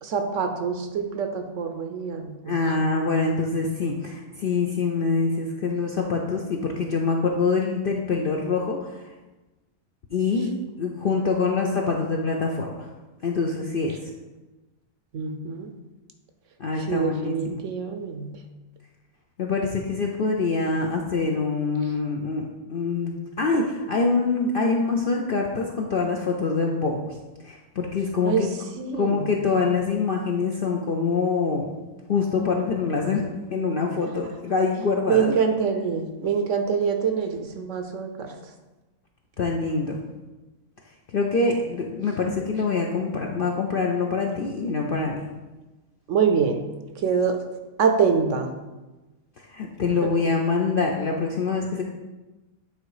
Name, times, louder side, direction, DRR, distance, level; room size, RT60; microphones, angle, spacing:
voice 1, 0.0-2.8 15.1-15.7 16.8-18.3 28.2-29.3 35.1-38.3 46.1-46.6 47.0-47.4 47.8-48.5 50.0-50.1, right 6 dB, 65° right, 6 dB, 0.9 m, -25 dB
voice 2, 2.5-9.0 10.1-10.5 10.8-12.9 13.2-14.0 16.6-17.6 19.4-27.2 27.4-28.5 29.0-31.8 32.1-33.2 33.5-35.3 39.4-40.0 41.1-45.2 49.5-51.8, left 4 dB, 55° left, 0 dB, 0.6 m, -25 dB
8.7 x 3.8 x 4.8 m, 1.1 s
omnidirectional pair, 1.6 m